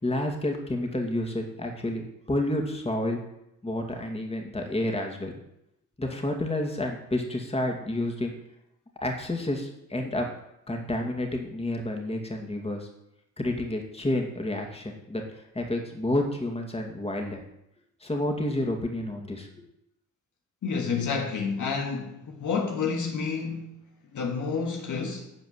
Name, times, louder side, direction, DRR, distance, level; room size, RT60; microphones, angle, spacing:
voice 1, 0.0-3.2 3.6-5.4 6.0-8.3 9.0-10.3 10.7-12.9 13.4-15.2 15.5-17.4 18.0-19.7, left 1 dB, 20° left, 2.5 m, -30 dB
voice 2, 20.6-23.8 24.1-25.3, left 5 dB, 70° left, 1.8 m, -29 dB
12.0 x 5.0 x 8.1 m
cardioid pair, 75°, 31 cm